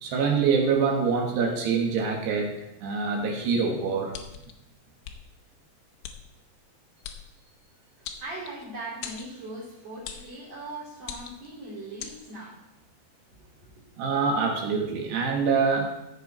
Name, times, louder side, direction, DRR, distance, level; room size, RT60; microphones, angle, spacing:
voice 1, 0.0-4.1 14.0-15.9, right 5 dB, 70° right, 1 dB, 3.7 m, -25 dB
sound 1, 4.1-4.5 5.0-5.2 6.0-6.2 7.0-7.2 8.1-8.7 9.0-9.3 10.1-10.3 11.0-11.5 12.0-12.2, left 9 dB, 85° left, 3.1 m, -39 dB
voice 2, 8.0-12.6 13.4-13.7, right 2 dB, 40° right, -9 dB, 4.4 m, -40 dB
16.0 x 6.5 x 4.4 m, 0.87 s
omnidirectional pair, 5.1 m